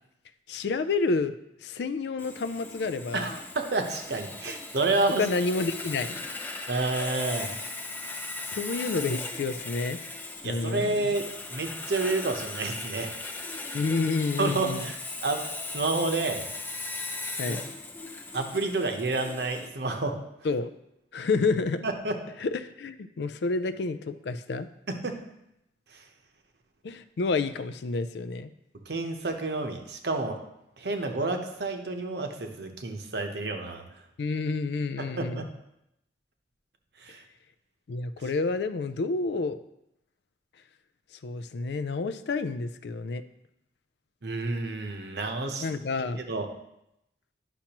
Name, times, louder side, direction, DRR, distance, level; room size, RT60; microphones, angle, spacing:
voice 1, 0.5-1.4 1.6-3.3 5.2-6.3 8.5-10.0 10.4-11.1 13.7-14.9 17.4-17.6 20.4-20.7 21.1-21.9 22.4-24.7 26.8-28.5 34.2-35.5 37.9-39.6 41.2-43.2 45.6-46.2, left 3 dB, 70° left, 12 dB, 0.4 m, -29 dB
Sawing, 2.2-19.7, left 2 dB, 10° left, 0.5 m, -38 dB
voice 2, 3.1-5.3 6.7-7.6 10.4-13.1 14.4-15.4 15.7-16.5 17.4-17.6 18.3-20.2 21.8-22.2 24.9-25.2 25.9-26.0 28.9-30.4 30.8-33.8 35.1-35.4 37.0-37.2 44.2-45.6 46.1-46.5, right 3 dB, 70° right, 5 dB, 0.9 m, -29 dB
10.0 x 5.9 x 3.0 m, 0.83 s
head